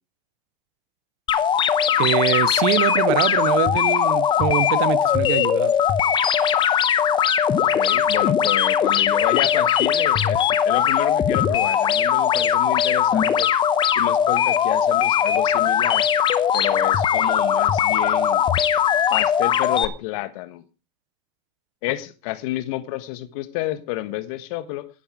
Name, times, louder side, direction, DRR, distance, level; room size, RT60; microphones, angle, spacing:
sound 1, 1.3-19.9, left 8 dB, 20° left, 0.9 m, -20 dB
voice 1, 2.0-5.8, right 17 dB, 50° right, 0.7 m, -24 dB
voice 2, 7.7-13.5 13.9-16.1 16.5-18.4 19.1-20.6 21.8-24.9, left 16 dB, 55° left, 1.4 m, -30 dB
12.0 x 10.0 x 5.0 m
supercardioid pair, 135°, 21 cm